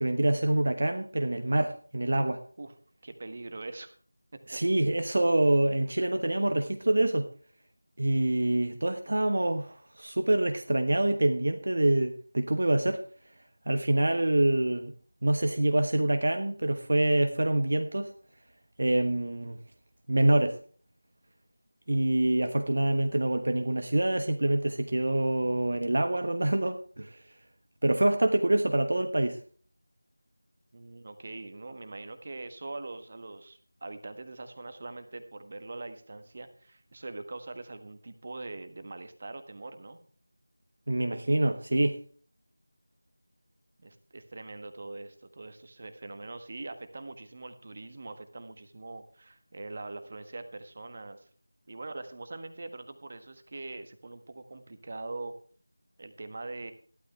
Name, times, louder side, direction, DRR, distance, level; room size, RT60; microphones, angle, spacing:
voice 1, 0.0-2.4 4.5-7.3 8.0-13.0 13.7-14.9 15.2-18.1 18.8-19.6 20.1-20.6 21.9-27.2 27.8-29.4 40.9-42.0, right 1 dB, 50° right, 6 dB, 1.2 m, -26 dB
voice 2, 3.0-3.9 30.7-40.0 43.8-51.3 51.7-55.3 56.0-56.7, right 2 dB, 35° right, 9 dB, 1.5 m, -42 dB
15.5 x 12.5 x 3.3 m, 0.44 s
figure-of-eight pair, 170°, 0 cm